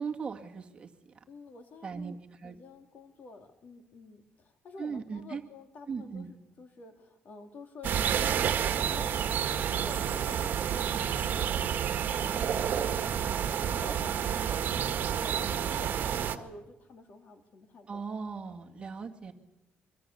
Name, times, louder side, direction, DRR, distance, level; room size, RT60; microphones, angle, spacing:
voice 1, 0.0-1.1 1.8-2.6 4.8-5.4 5.9-6.3 17.9-19.3, right 5 dB, 30° right, 2 dB, 2.3 m, -38 dB
voice 2, 1.3-2.2 2.4-18.0, left 3 dB, 55° left, 5 dB, 3.4 m, -50 dB
sound 1, 7.8-16.4, right 9 dB, 60° right, 1.8 m, -29 dB
25.5 x 24.0 x 7.1 m, 0.94 s
cardioid pair, 125°, 4 cm